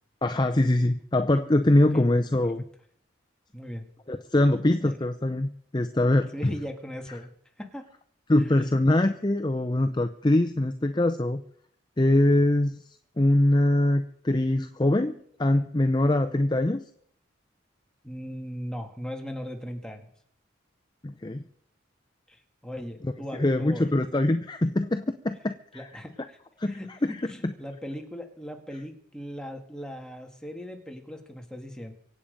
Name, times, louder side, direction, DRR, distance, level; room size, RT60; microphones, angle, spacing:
voice 1, 0.2-2.6 4.1-6.5 8.3-11.4 12.0-12.8 13.2-16.8 21.0-21.4 23.0-23.1 23.4-25.9 26.6-27.5, left 1 dB, 20° left, 8 dB, 0.6 m, -23 dB
voice 2, 3.5-3.9 4.8-4.9 6.3-7.3 7.6-7.9 8.4-8.7 18.0-20.1 22.3-23.8 25.7-26.4 26.7-26.9 27.2-31.9, equal, 5° left, 3 dB, 1.9 m, -38 dB
24.5 x 8.6 x 5.2 m, 0.65 s
head